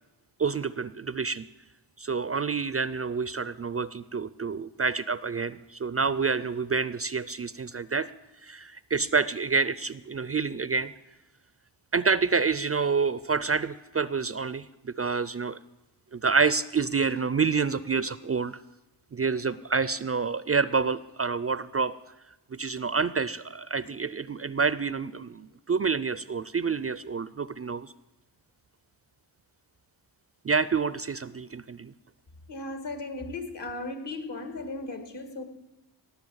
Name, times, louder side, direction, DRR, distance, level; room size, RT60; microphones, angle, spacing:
voice 1, 0.4-1.5 2.0-8.1 8.4-10.9 11.9-15.6 16.1-18.6 19.1-22.0 22.5-27.9 30.4-31.9, right 5 dB, 35° right, 17 dB, 0.4 m, -28 dB
voice 2, 32.5-35.4, left 2 dB, 65° left, 8 dB, 2.0 m, -36 dB
18.5 x 7.0 x 7.9 m, 1.0 s
wide cardioid pair, 70°, 46 cm